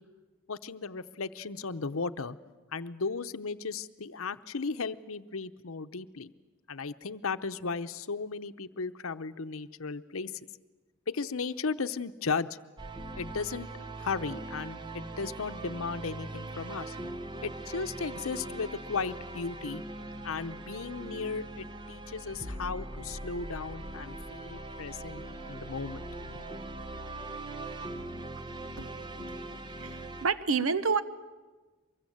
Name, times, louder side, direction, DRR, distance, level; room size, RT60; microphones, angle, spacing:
voice 1, 0.5-2.4 2.7-6.3 6.7-10.4 11.1-12.5 13.1-13.7 14.0-17.0 17.4-19.8 20.2-26.5, left 4 dB, 80° left, 12 dB, 0.8 m, -36 dB
sound 1, 12.8-30.2, right 2 dB, 20° right, 1.0 m, -41 dB
voice 2, 29.8-31.0, right 5 dB, 80° right, 14 dB, 1.0 m, -28 dB
24.0 x 22.5 x 7.8 m, 1.3 s
head